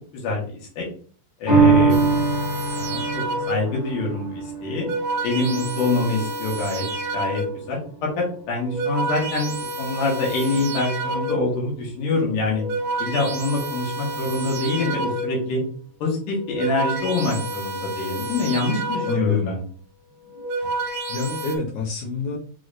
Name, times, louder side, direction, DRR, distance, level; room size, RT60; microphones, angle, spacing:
voice 1, 1.4-2.2 2.8-4.9 5.2-6.8 7.1-7.4 7.7-12.6 13.0-15.6 16.0-19.6, left 2 dB, 85° left, -2 dB, 3.0 m, -25 dB
sound 1, 1.5-8.1 8.6-8.7, right 4 dB, 45° left, 2.3 m, -24 dB
sound 2, 1.9-3.8 4.6-7.7 8.5-11.7 12.4-15.5 16.3-19.5 20.2-21.6, right 2 dB, 70° right, 1.3 m, -29 dB
voice 2, 19.1-19.6 20.6-20.7 21.1-22.4, left 5 dB, 70° left, -3 dB, 2.3 m, -26 dB
6.0 x 3.2 x 2.5 m, 0.43 s
omnidirectional pair, 3.6 m